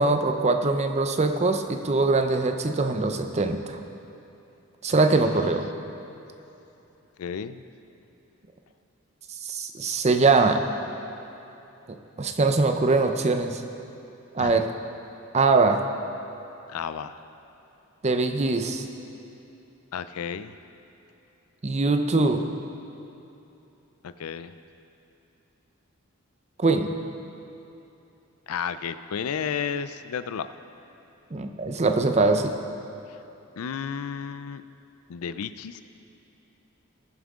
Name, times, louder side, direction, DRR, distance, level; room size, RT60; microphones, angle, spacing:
voice 1, 0.0-3.8 4.8-5.6 9.4-10.6 12.2-13.6 14.3-14.7 15.3-15.8 18.0-18.9 21.6-22.4 26.6-26.9 31.3-32.5, right 3 dB, 30° right, 6 dB, 0.6 m, -22 dB
voice 2, 7.2-7.6 14.4-14.6 16.7-17.2 19.9-20.5 24.0-24.5 28.5-30.5 33.1-33.2 33.6-34.6 35.1-35.8, left 7 dB, 75° left, 12 dB, 0.4 m, -32 dB
20.5 x 7.5 x 3.6 m, 3.0 s
head